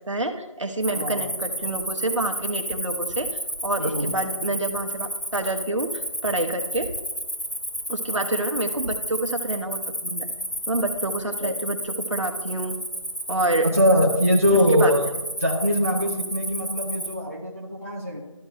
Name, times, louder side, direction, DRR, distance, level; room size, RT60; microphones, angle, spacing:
voice 1, 0.1-3.3 3.6-6.9 7.9-10.3 10.7-12.8 13.3-13.7 14.5-14.9, right 2 dB, 65° right, 5 dB, 0.9 m, -27 dB
Cricket, 0.8-17.1, right 1 dB, 15° left, 1.1 m, -31 dB
voice 2, 0.9-1.3 3.8-4.1 11.4-11.5 13.6-15.1 15.4-18.2, equal, 25° right, -2 dB, 0.5 m, -22 dB
12.5 x 7.9 x 2.2 m, 1.2 s
figure-of-eight pair, 170°, 17 cm